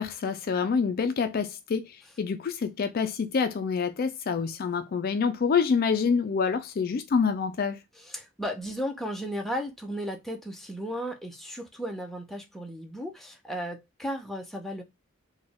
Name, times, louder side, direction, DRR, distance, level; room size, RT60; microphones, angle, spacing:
voice 1, 0.0-7.8, left 5 dB, 45° left, 0.3 m, -27 dB
voice 2, 8.0-14.8, equal, ahead, 0.6 m, -35 dB
4.1 x 2.2 x 3.4 m
head